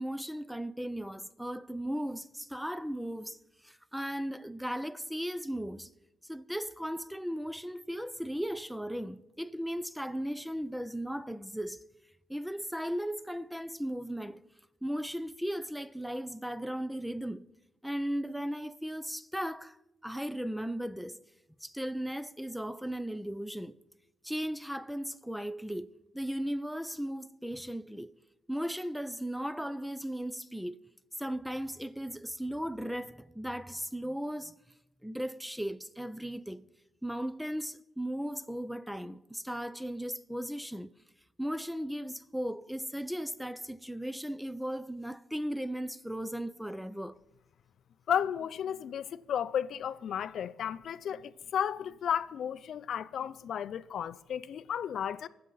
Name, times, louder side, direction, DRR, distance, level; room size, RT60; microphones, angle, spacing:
voice 1, 0.0-5.9 6.2-11.8 12.3-14.4 14.8-17.5 17.8-19.8 20.0-21.2 21.6-23.8 24.2-28.1 28.5-30.8 31.2-34.5 35.0-36.7 37.0-40.9 41.4-47.2, equal, ahead, 0.4 m, -36 dB
voice 2, 48.1-55.3, left 9 dB, 65° left, 0.4 m, -33 dB
20.5 x 7.6 x 4.0 m
cardioid pair, 90°, 0 cm